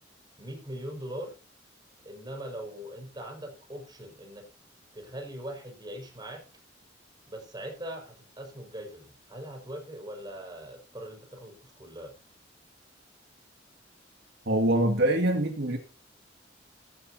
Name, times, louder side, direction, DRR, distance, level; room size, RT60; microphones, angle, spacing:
voice 1, 0.4-1.3 2.0-4.4 4.9-6.4 7.3-12.1, right 1 dB, 20° right, 2 dB, 5.8 m, -41 dB
voice 2, 14.5-15.8, right 1 dB, 60° right, 4 dB, 2.1 m, -24 dB
15.0 x 14.0 x 2.8 m, 0.32 s
head